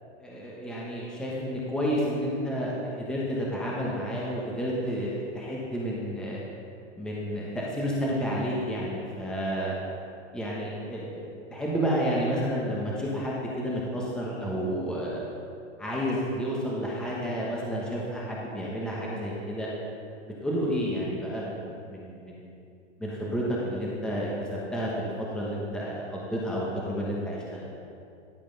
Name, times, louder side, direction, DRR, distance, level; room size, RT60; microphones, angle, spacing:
voice 1, 0.2-6.4 7.0-9.7 10.3-15.2 15.8-19.7 20.4-22.5 23.0-24.3 24.7-27.7, equal, ahead, -5 dB, 1.2 m, -30 dB
12.5 x 5.1 x 5.3 m, 2.5 s
hypercardioid pair, 140°, 37 cm